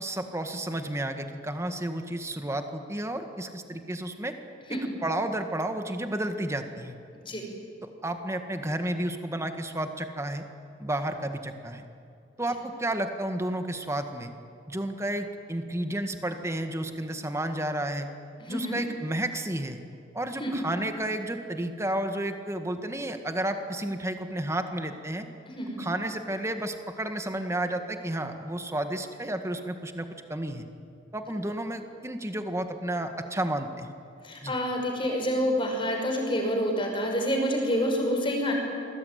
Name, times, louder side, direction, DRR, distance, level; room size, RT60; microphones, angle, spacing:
voice 1, 0.0-4.3 5.0-7.0 7.8-10.4 10.8-11.8 12.4-14.3 14.7-18.1 18.5-19.8 20.1-25.3 25.8-30.7 31.1-33.9 34.4-34.5, right 1 dB, 15° right, 6 dB, 1.8 m, -31 dB
voice 2, 18.4-18.8 20.4-20.5 25.5-25.8 34.2-38.5, equal, 30° left, 2 dB, 5.8 m, -27 dB
27.0 x 20.5 x 9.5 m, 2.5 s
head